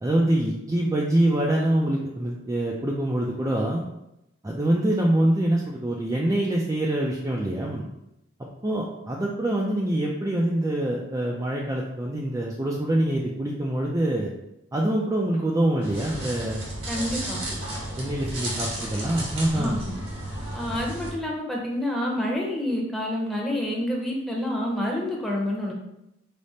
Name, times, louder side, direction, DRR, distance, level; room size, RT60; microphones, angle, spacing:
voice 1, 0.0-3.8 4.4-7.8 8.6-14.3 14.7-16.6 18.0-19.8, right 1 dB, 15° right, -3 dB, 0.4 m, -25 dB
sound 1, 15.8-21.1, right 1 dB, 80° right, 1.5 m, -33 dB
voice 2, 16.9-17.5 19.5-20.0 20.5-25.7, left 1 dB, ahead, -3 dB, 0.8 m, -28 dB
4.9 x 2.1 x 4.1 m, 0.86 s
head